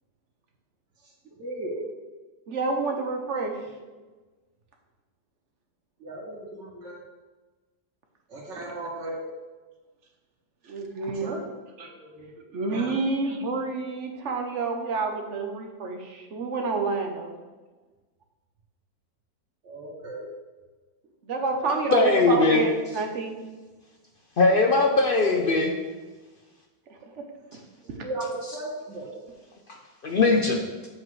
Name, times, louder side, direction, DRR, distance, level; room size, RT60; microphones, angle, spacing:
voice 1, 1.4-1.8 6.0-6.9 8.3-9.2 11.2-11.4 11.8-12.9 19.6-20.3 25.3-25.7 27.8-29.2, right 1 dB, 80° right, -5 dB, 2.6 m, -36 dB
voice 2, 2.5-3.6 10.6-11.4 11.8-11.9 12.5-17.3 21.3-23.3 26.9-27.3, right 3 dB, 50° right, 4 dB, 1.0 m, -29 dB
voice 3, 21.7-22.6 24.4-25.7 30.0-30.6, left 3 dB, 80° left, 2 dB, 0.4 m, -20 dB
8.1 x 7.6 x 3.2 m, 1.3 s
omnidirectional pair, 1.9 m